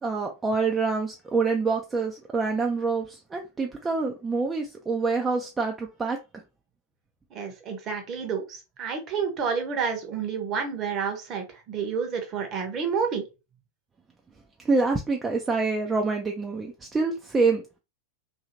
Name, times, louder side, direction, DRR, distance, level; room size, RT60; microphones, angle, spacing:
voice 1, 0.0-6.2 14.6-17.8, right 4 dB, 15° right, 0.4 m, -26 dB
voice 2, 7.3-13.2, right 6 dB, 30° right, 0.8 m, -29 dB
2.8 x 2.6 x 2.7 m
figure-of-eight pair, 90°, 0 cm